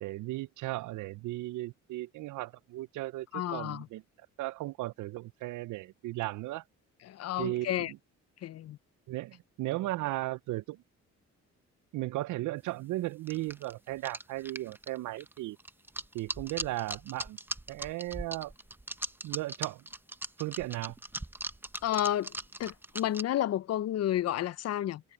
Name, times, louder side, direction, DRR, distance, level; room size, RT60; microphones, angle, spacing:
voice 1, 0.0-4.0 4.4-6.6 7.4-8.0 9.1-10.8 11.9-15.6 16.1-17.4 17.7-18.5 19.2-19.8 20.4-20.9, right 17 dB, 80° right, 0.5 m, -36 dB
voice 2, 3.3-3.9 7.0-7.9 8.4-8.8 21.8-25.0, left 12 dB, 55° left, 0.5 m, -31 dB
sound 1, 13.3-23.2, right 1 dB, 5° right, 0.8 m, -39 dB
cardioid pair, 90°, 30 cm